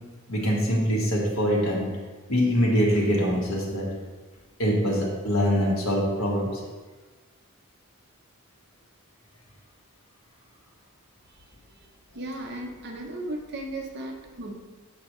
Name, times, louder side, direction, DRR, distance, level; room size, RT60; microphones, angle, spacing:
voice 1, 0.3-1.9 2.3-3.9 4.6-6.6, equal, 70° left, -2 dB, 1.6 m, -24 dB
voice 2, 12.1-14.6, right 1 dB, 50° right, 1 dB, 0.8 m, -35 dB
7.6 x 5.2 x 3.1 m, 1.3 s
head